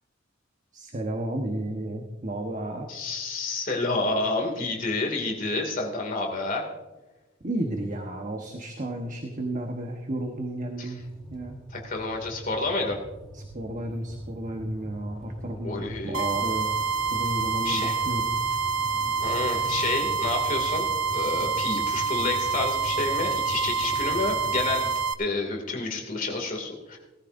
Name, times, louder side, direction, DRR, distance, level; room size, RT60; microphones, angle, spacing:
voice 1, 0.7-3.2 7.4-11.0 11.3-11.6 13.3-16.8 17.1-18.4, right 1 dB, 40° right, 2 dB, 1.2 m, -33 dB
voice 2, 2.9-6.6 10.8-10.9 11.7-13.0 15.6-16.3 17.6-18.0 19.2-20.9 21.1-24.9 25.2-27.0, left 3 dB, 45° left, 1 dB, 2.5 m, -29 dB
sound 1, 11.0-24.9, right 1 dB, 5° left, 1.2 m, -42 dB
sound 2, 16.1-25.1, right 5 dB, 90° right, 0.8 m, -27 dB
18.5 x 14.0 x 2.6 m, 1.1 s
head